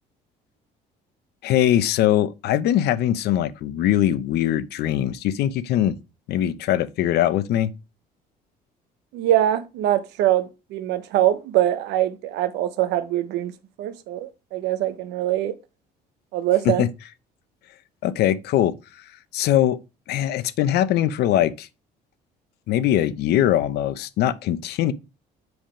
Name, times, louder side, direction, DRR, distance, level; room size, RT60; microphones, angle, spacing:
voice 1, 1.4-6.0 6.3-7.7 16.6-16.9 18.0-18.7 19.3-19.8 20.1-21.7 22.7-24.9, left 12 dB, 75° left, 0.7 m, -21 dB
voice 2, 9.1-13.5 13.8-15.5 16.3-16.8, right 12 dB, 90° right, 0.8 m, -23 dB
7.9 x 3.5 x 5.0 m
cardioid pair, 110°, 17 cm